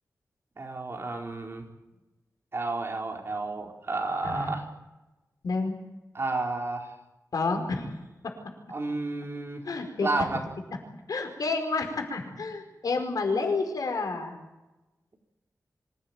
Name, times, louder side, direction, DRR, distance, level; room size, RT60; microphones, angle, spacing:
voice 1, 0.6-1.6 2.5-4.6 6.1-6.9 8.7-9.6 10.0-10.4, right 3 dB, 45° right, 2 dB, 4.4 m, -31 dB
voice 2, 5.4-5.8 7.3-7.9 9.6-10.1 11.1-14.4, left 3 dB, 90° left, 5 dB, 5.1 m, -29 dB
25.5 x 16.5 x 9.0 m, 1.0 s
wide cardioid pair, 135°, 6 cm